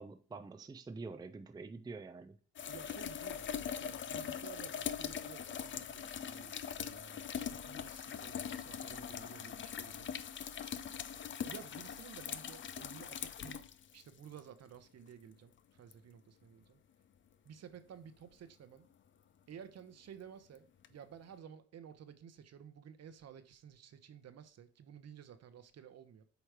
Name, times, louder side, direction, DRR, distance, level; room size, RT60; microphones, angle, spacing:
voice 1, 0.0-2.4, right 3 dB, 15° right, 0.4 m, -46 dB
sound 1, 2.6-14.4 15.9-16.0 20.8-20.9, left 8 dB, 40° left, 0.5 m, -42 dB
voice 2, 2.7-10.2 11.5-13.6 13.9-16.8 17.4-18.9 19.5-26.2, right 8 dB, 55° right, 0.9 m, -54 dB
8.1 x 3.1 x 5.0 m
cardioid pair, 90°, 30 cm